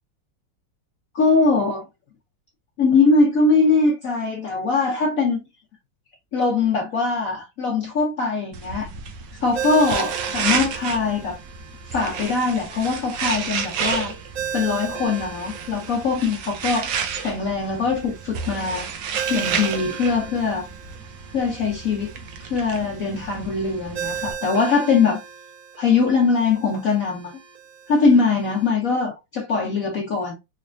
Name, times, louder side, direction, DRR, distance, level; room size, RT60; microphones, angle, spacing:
voice 1, 1.1-1.8 2.8-5.5 6.3-8.9 9.4-11.4 11.9-14.1 14.5-16.9 17.2-18.9 19.3-20.7 21.3-22.1 22.4-25.2 25.8-27.3 27.9-30.3, left 4 dB, 60° left, 0.9 m, -21 dB
sound 1, 8.5-24.3, right 6 dB, 70° right, 1.2 m, -31 dB
Ringtone, 9.5-28.7, right 8 dB, 45° right, 1.4 m, -37 dB
4.1 x 3.2 x 2.6 m
omnidirectional pair, 2.4 m